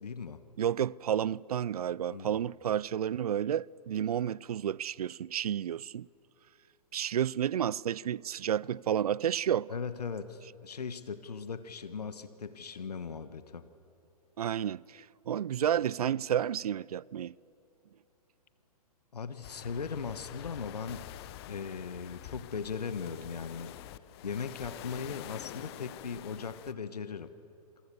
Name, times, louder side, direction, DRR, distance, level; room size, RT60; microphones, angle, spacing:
voice 1, 0.0-0.4 2.1-2.4 9.7-13.7 19.1-21.1 21.5-23.7 24.2-27.3, left 5 dB, 80° left, 1.4 m, -38 dB
voice 2, 0.6-6.1 6.9-9.7 14.4-17.3, right 10 dB, 70° right, 0.5 m, -31 dB
sound 1, 19.4-26.7, left 14 dB, 40° left, 0.9 m, -47 dB
28.0 x 24.0 x 6.9 m
hypercardioid pair, 125°, 20 cm